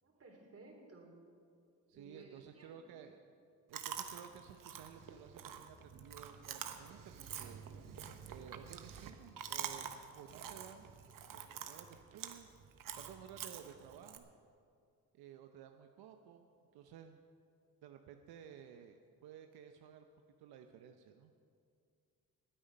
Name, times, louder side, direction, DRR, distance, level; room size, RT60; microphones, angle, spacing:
voice 1, 0.0-1.2 1.9-2.7, right 3 dB, 40° right, 1 dB, 3.6 m, -57 dB
voice 2, 1.9-3.2 3.7-10.9 11.3-12.5 13.0-14.3 15.1-17.2 17.8-20.1 20.4-21.3, right 9 dB, 85° right, 6 dB, 0.8 m, -55 dB
Chewing mastication, 3.7-14.2, right 8 dB, 60° right, 1.1 m, -47 dB
19.0 x 8.9 x 5.4 m, 2.3 s
cardioid pair, 80°, 37 cm